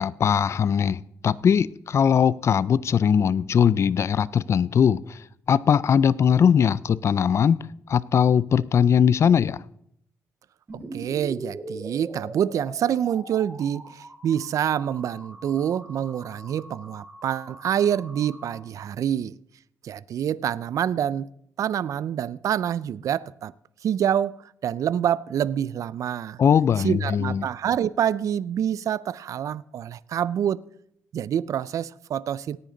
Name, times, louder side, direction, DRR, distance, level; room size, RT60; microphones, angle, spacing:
voice 1, 0.0-5.2 5.5-7.6 7.9-9.6 26.4-27.5, left 7 dB, 50° left, 0.4 m, -20 dB
sound 1, 10.7-18.6, right 2 dB, 25° right, 3.8 m, -41 dB
voice 2, 10.9-19.4 19.8-21.3 21.6-23.5 23.8-26.4 26.8-30.6 31.1-32.6, right 9 dB, 65° right, 0.4 m, -26 dB
18.0 x 10.0 x 3.9 m
cardioid pair, 120°, 6 cm